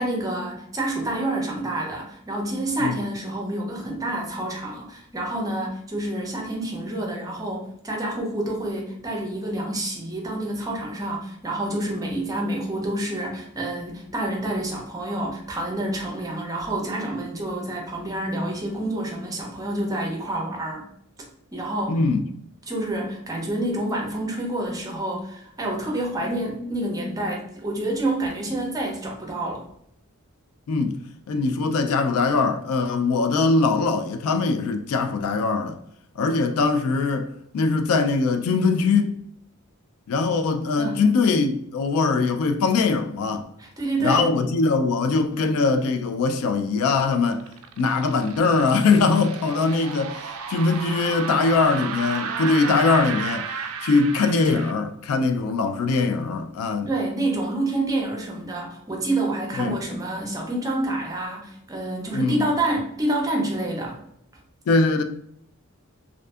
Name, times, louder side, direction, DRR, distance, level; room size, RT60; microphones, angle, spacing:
voice 1, 0.0-20.8 21.5-22.0 22.7-29.7 40.8-41.0 43.6-44.3 56.9-64.0, right 1 dB, 15° right, 0.6 m, -28 dB
voice 2, 21.9-22.2 30.7-31.0 31.3-35.8 36.2-39.2 40.1-43.5 44.0-47.5 47.8-53.5 53.8-56.9 59.6-59.7 62.1-62.4 64.7-65.0, left 4 dB, 75° left, 0.3 m, -22 dB
sound 1, 47.0-54.7, right 6 dB, 70° right, 0.3 m, -33 dB
2.5 x 2.5 x 2.3 m
head